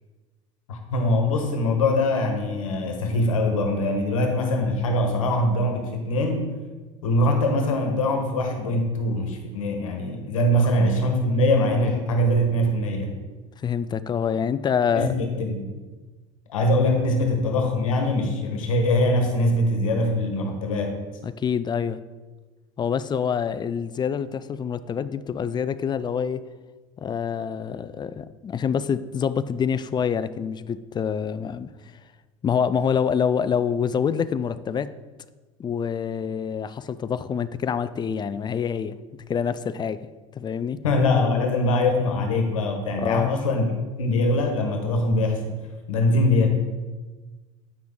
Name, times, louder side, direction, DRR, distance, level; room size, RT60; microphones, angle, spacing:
voice 1, 0.7-6.5 7.0-13.2 14.9-15.7 16.5-21.0 40.8-43.7 44.0-45.6 45.9-46.5, left 1 dB, 90° left, 4 dB, 1.3 m, -22 dB
voice 2, 13.6-15.1 21.2-22.0 22.8-26.4 27.0-31.7 32.4-34.9 35.6-39.0 39.3-40.0 40.3-40.8 43.0-43.3, left 7 dB, 25° left, 15 dB, 0.4 m, -26 dB
8.7 x 5.8 x 3.8 m, 1.3 s
hypercardioid pair, 85°, 17 cm